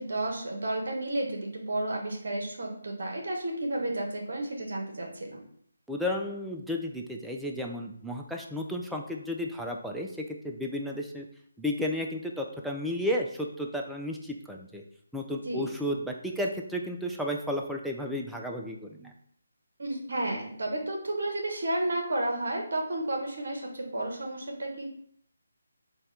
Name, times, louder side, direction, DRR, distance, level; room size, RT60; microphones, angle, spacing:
voice 1, 0.0-5.4 15.4-15.6 19.8-24.9, right 1 dB, 60° right, 1 dB, 1.0 m, -32 dB
voice 2, 5.9-11.3 11.6-14.8 15.1-19.1, left 1 dB, ahead, 0 dB, 0.3 m, -33 dB
4.1 x 2.2 x 3.6 m, 0.63 s
figure-of-eight pair, 150°, 0 cm